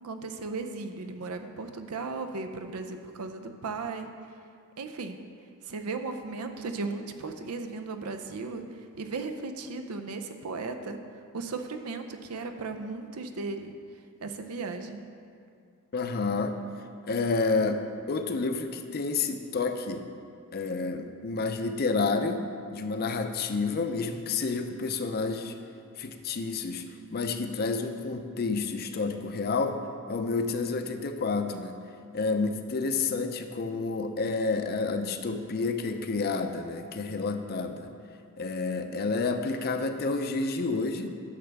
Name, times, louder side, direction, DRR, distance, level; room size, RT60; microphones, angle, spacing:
voice 1, 0.0-4.1 4.8-5.2 5.7-8.6 9.0-11.0 11.3-13.7 14.2-15.0, right 3 dB, 80° right, 7 dB, 0.6 m, -36 dB
voice 2, 15.9-16.5 17.0-17.8 18.1-20.0 20.5-22.4 22.7-25.5 26.0-26.9 27.1-29.8 30.1-31.8 32.1-37.9 38.4-41.1, left 4 dB, 45° left, 7 dB, 0.5 m, -29 dB
10.0 x 6.7 x 3.4 m, 2.4 s
head